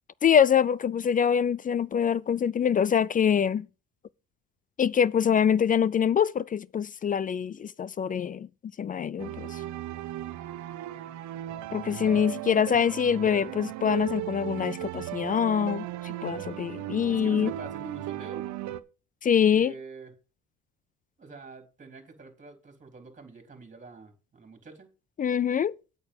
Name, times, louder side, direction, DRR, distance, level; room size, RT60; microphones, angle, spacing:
voice 1, 0.2-3.7 4.8-8.5 8.8-9.6 11.7-17.5 19.2-19.7 25.2-25.8, left 8 dB, 30° left, 0.4 m, -24 dB
sound 1, 9.2-18.8, right 14 dB, 65° right, 0.8 m, -36 dB
voice 2, 17.1-18.5 19.5-20.1 21.2-24.9, right 4 dB, 25° right, 3.7 m, -45 dB
8.6 x 6.9 x 5.4 m
cardioid pair, 95°, 31 cm